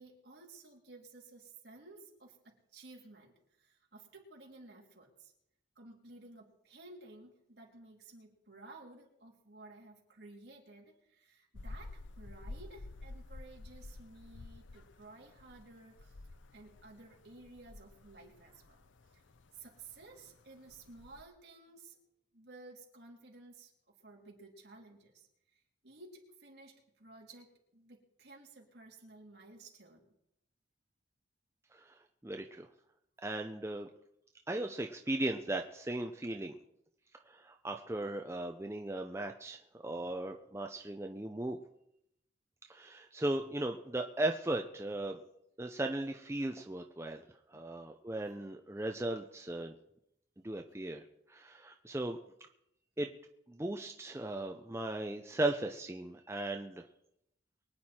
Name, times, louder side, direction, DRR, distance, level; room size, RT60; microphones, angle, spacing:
voice 1, 0.0-5.3 5.7-16.2 16.5-18.8 19.1-19.2 19.5-22.0 22.3-23.7 24.0-30.1, right 2 dB, 60° right, -1 dB, 3.3 m, -55 dB
sound 1, 11.5-21.2, left 2 dB, 90° left, 0.7 m, -51 dB
voice 2, 32.2-32.7 33.2-33.9 34.5-36.6 37.3-41.6 42.7-45.2 45.6-47.2 47.5-49.7 50.4-52.2 53.0-53.1 53.5-56.9, right 1 dB, 15° right, 4 dB, 0.6 m, -37 dB
23.5 x 9.4 x 4.4 m, 0.80 s
head